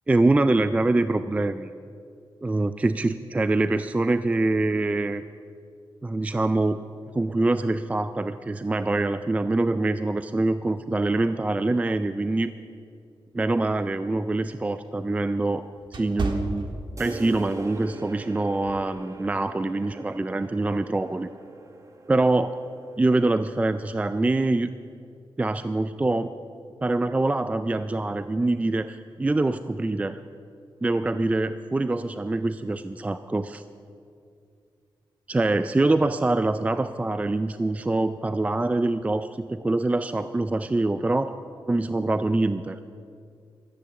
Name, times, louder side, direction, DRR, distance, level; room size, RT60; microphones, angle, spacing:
voice 1, 0.1-1.7 2.4-5.2 6.0-6.8 7.1-12.5 13.3-15.6 15.9-16.7 17.0-21.3 22.1-22.6 23.0-24.7 25.4-26.3 26.8-30.2 30.8-33.6 35.3-41.3 41.7-42.8, right 2 dB, 15° right, 12 dB, 0.3 m, -24 dB
sound 1, 13.7-17.4 17.8-18.1 18.7-18.9, right 2 dB, 60° right, 1.5 m, -33 dB
sound 2, 17.0-24.5, right 3 dB, 35° right, 1.1 m, -43 dB
13.5 x 10.5 x 6.9 m, 2.3 s
wide cardioid pair, 120°, 9 cm